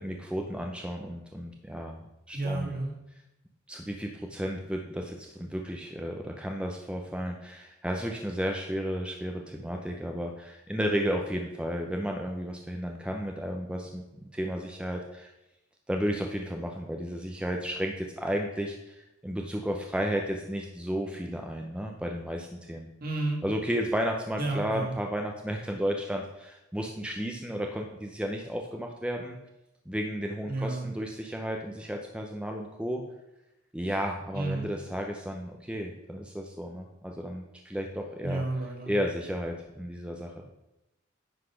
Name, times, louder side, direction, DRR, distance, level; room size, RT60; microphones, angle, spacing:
voice 1, 0.0-2.0 2.3-2.8 3.7-15.3 15.9-22.9 23.4-29.4 29.9-33.0 33.7-38.4 38.8-40.3, equal, 5° right, 2 dB, 0.6 m, -33 dB
voice 2, 2.3-2.9 23.0-23.4 24.4-24.9 30.5-30.9 34.3-34.7 38.2-39.0, right 2 dB, 45° right, -1 dB, 2.0 m, -31 dB
10.0 x 4.1 x 5.7 m, 0.92 s
head